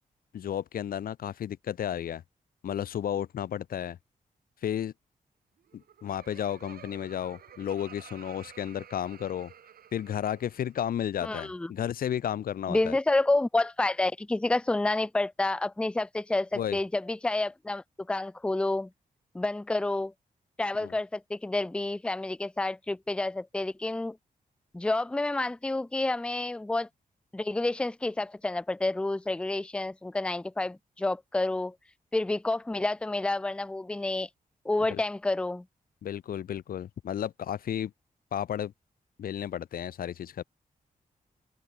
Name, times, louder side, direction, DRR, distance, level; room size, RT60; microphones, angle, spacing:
voice 1, 0.3-2.2 2.6-4.0 4.6-4.9 5.7-9.5 9.9-13.0 16.5-16.8 20.8-20.9 34.9-35.0 36.0-37.9 38.3-38.7 39.2-40.4, left 10 dB, 75° left, 0.6 m, -33 dB
Laughter, 5.6-10.8, right 9 dB, 90° right, 4.7 m, -52 dB
voice 2, 11.2-11.7 12.7-18.9 19.3-20.1 20.6-24.2 24.7-26.9 27.3-31.8 32.1-34.3 34.6-35.6, left 2 dB, 5° left, 0.5 m, -29 dB
open air
wide cardioid pair, 120°, 15 cm